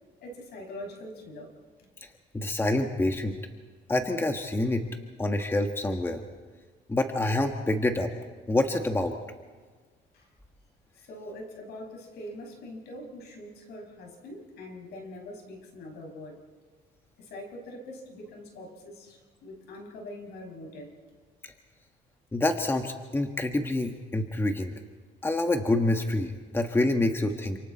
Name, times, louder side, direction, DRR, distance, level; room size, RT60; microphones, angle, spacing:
voice 1, 0.2-1.5 10.1-10.3 11.0-16.4 17.2-20.9, left 1 dB, 75° left, 2 dB, 6.2 m, -43 dB
voice 2, 2.3-3.4 3.9-4.9 5.2-6.2 6.9-8.1 8.5-9.1 21.4-21.5 22.3-24.7 25.2-27.6, left 2 dB, 15° left, 4 dB, 1.6 m, -27 dB
29.0 x 27.0 x 4.3 m, 1.5 s
cardioid pair, 110°, 17 cm